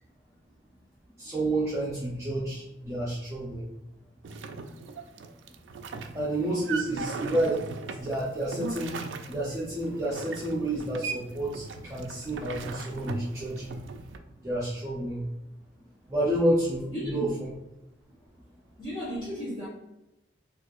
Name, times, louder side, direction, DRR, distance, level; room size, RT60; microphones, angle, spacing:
voice 1, 1.2-3.7 6.0-7.5 8.0-9.0 9.3-13.8 14.4-15.2 16.1-17.3, right 1 dB, 15° right, -8 dB, 0.6 m, -30 dB
sound 1, 4.2-14.2, right 4 dB, 80° right, 0.4 m, -38 dB
voice 2, 6.9-7.3 16.9-17.3 18.8-19.7, equal, 25° left, -10 dB, 1.1 m, -35 dB
4.3 x 2.5 x 2.4 m, 0.91 s
head